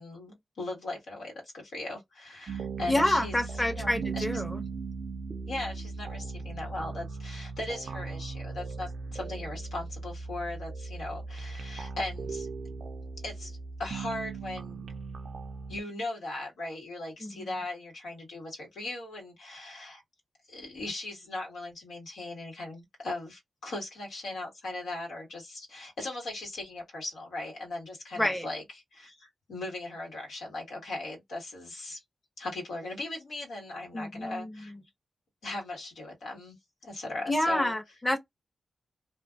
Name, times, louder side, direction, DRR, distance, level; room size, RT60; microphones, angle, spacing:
voice 1, 0.0-3.4 3.6-4.2 5.5-12.5 13.2-14.9 15.7-20.0 20.5-28.6 28.9-32.0 32.4-34.7 35.4-36.6 36.8-37.8, left 2 dB, 90° left, 1.5 m, -38 dB
sound 1, 2.5-15.8, right 4 dB, 70° right, 0.3 m, -38 dB
voice 2, 2.9-4.6 17.2-17.6 28.2-28.5 33.9-34.8 37.3-38.2, left 1 dB, 10° left, 0.7 m, -28 dB
2.5 x 2.2 x 2.3 m
cardioid pair, 60°, 0 cm